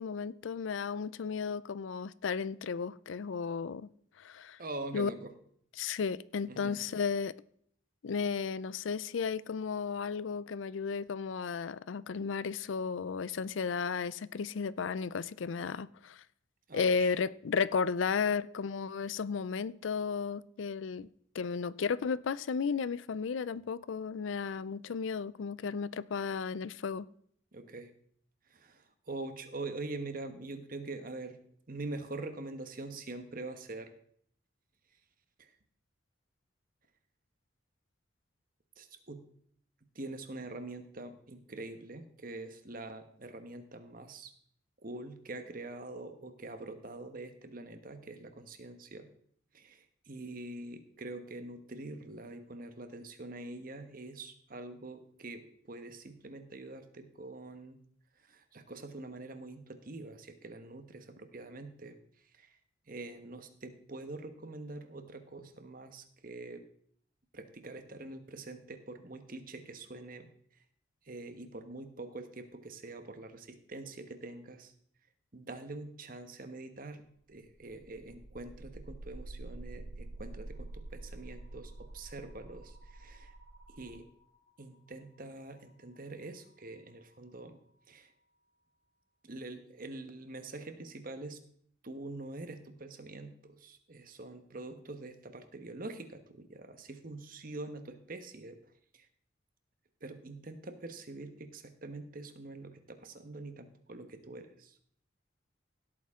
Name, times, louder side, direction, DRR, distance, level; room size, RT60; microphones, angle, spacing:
voice 1, 0.0-3.9 4.2-4.6 4.9-5.1 5.8-7.3 8.0-16.2 16.7-21.1 21.3-27.1, left 5 dB, 80° left, 19 dB, 0.4 m, -34 dB
voice 2, 4.6-5.3 6.5-6.8 16.7-17.1 27.5-27.9 28.5-31.4 31.7-33.9 35.4-35.5 38.8-39.2 39.9-44.3 44.8-49.1 49.5-57.8 58.3-62.0 62.4-62.5 62.9-66.6 67.3-70.3 71.1-74.7 75.3-77.0 77.3-83.3 83.7-84.1 84.6-87.6 87.9-88.1 89.2-91.4 91.8-98.6 98.9-99.1 100.0-104.8, right 2 dB, 45° right, 8 dB, 1.2 m, -44 dB
sound 1, 77.3-87.3, right 2 dB, 85° right, 5.2 m, -49 dB
16.5 x 8.6 x 3.7 m, 0.64 s
head